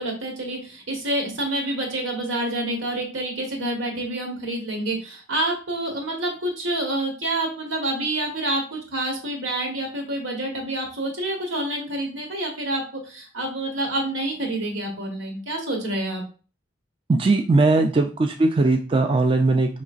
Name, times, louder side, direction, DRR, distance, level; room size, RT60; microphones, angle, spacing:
voice 1, 0.0-16.2, right 1 dB, 80° right, 1 dB, 1.2 m, -28 dB
voice 2, 17.1-19.8, right 3 dB, 30° right, 4 dB, 0.3 m, -19 dB
4.9 x 3.0 x 2.4 m, 0.35 s
head